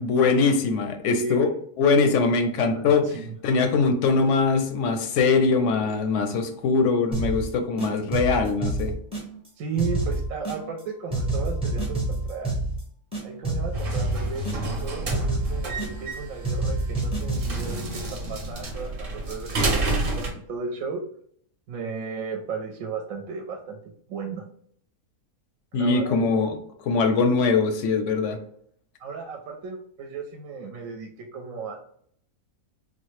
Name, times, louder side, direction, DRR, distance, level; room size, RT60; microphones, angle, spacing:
voice 1, 0.0-1.5 1.8-3.1 3.4-8.9 25.7-26.5 26.9-28.4, left 4 dB, 65° left, 7 dB, 0.8 m, -22 dB
voice 2, 1.0-1.4 2.0-2.2 2.6-3.4 9.6-12.6 13.2-21.0 21.7-23.8 24.1-24.4 25.7-26.1 27.0-27.1 29.0-31.8, right 4 dB, 70° right, 3 dB, 0.9 m, -35 dB
sound 1, 7.1-7.5 7.8-9.5 9.8-10.8 11.1-12.8 13.1-14.8 15.1-16.2 16.4-17.7, right 2 dB, 5° right, 0.7 m, -28 dB
sound 2, 13.7-20.3, right 2 dB, 45° right, 0.8 m, -29 dB
3.7 x 2.1 x 3.1 m, 0.63 s
omnidirectional pair, 1.5 m